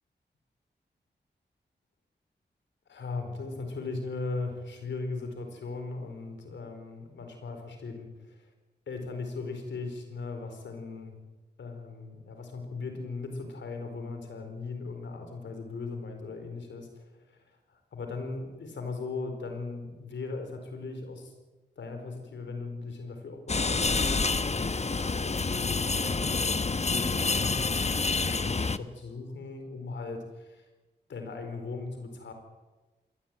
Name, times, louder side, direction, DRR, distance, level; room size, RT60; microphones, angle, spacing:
voice 1, 2.9-8.5 8.9-11.2 11.6-21.3 21.8-24.3 24.6-30.7 31.1-32.3, left 3 dB, 85° left, 6 dB, 4.6 m, -38 dB
sound 1, 23.5-28.8, left 4 dB, 35° left, 1.1 m, -28 dB
21.5 x 17.5 x 9.1 m, 1.2 s
cardioid pair, 45°, 18 cm